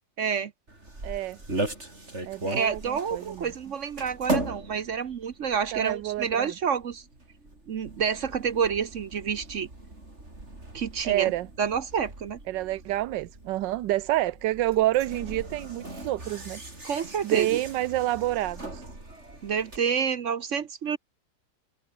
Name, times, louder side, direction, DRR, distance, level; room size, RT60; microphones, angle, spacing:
voice 1, 0.2-0.5 2.5-7.0 7.7-9.7 10.7-11.3 11.6-12.4 16.8-17.6 19.4-21.0, right 7 dB, 55° right, 1.0 m, -28 dB
sound 1, 0.7-19.8, right 2 dB, 35° right, 5.8 m, -38 dB
voice 2, 1.0-1.4 2.2-3.5 5.7-6.5 11.0-11.5 12.5-16.6 17.2-18.8, right 15 dB, 75° right, 1.3 m, -28 dB
omnidirectional pair, 2.0 m